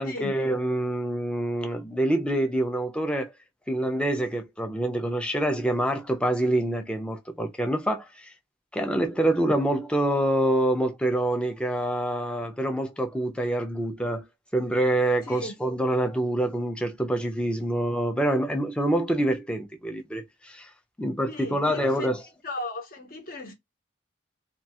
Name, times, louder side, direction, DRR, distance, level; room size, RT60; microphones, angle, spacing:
voice 1, 0.0-3.3 3.7-8.3 8.7-14.2 14.5-20.7 21.0-22.2, right 1 dB, 5° left, 0.4 m, -26 dB
voice 2, 21.3-22.1 22.4-23.5, left 1 dB, 50° left, 0.8 m, -36 dB
2.3 x 2.2 x 2.7 m
head